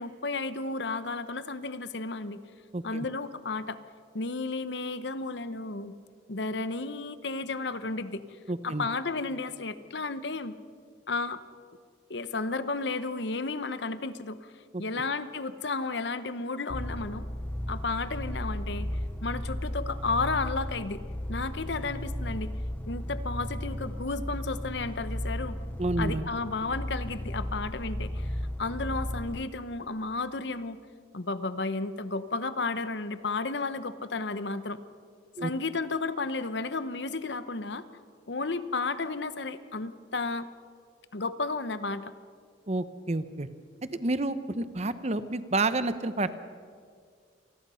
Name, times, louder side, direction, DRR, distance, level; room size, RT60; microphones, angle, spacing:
voice 1, 0.0-2.4 2.8-3.8 4.1-5.9 6.3-8.4 8.6-10.5 11.1-11.4 12.1-17.3 17.7-18.9 19.2-21.0 21.3-22.5 22.9-25.6 26.0-30.8 31.1-34.8 35.4-37.8 38.3-40.5 41.1-42.1, left 3 dB, 65° left, 13 dB, 0.9 m, -33 dB
voice 2, 2.7-3.1 8.5-8.9 25.8-26.3 35.4-35.5 42.7-43.5 43.9-46.4, right 2 dB, 35° right, 12 dB, 0.8 m, -29 dB
sound 1, 16.7-29.4, equal, 10° left, 0.6 m, -35 dB
27.5 x 20.0 x 5.7 m, 2.1 s
head